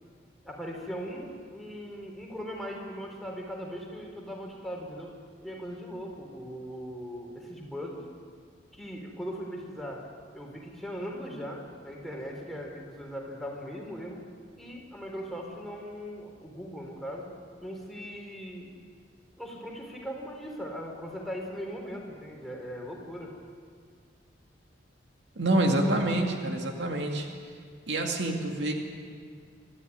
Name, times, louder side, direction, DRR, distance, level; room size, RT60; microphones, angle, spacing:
voice 1, 0.4-5.1 5.4-8.0 8.7-10.0 10.3-14.2 14.6-17.3 17.6-18.7 19.4-23.3, equal, ahead, -1 dB, 3.8 m, -39 dB
voice 2, 25.4-27.3 27.9-28.7, right 1 dB, 65° right, 2 dB, 2.3 m, -27 dB
24.0 x 13.0 x 9.7 m, 2.1 s
head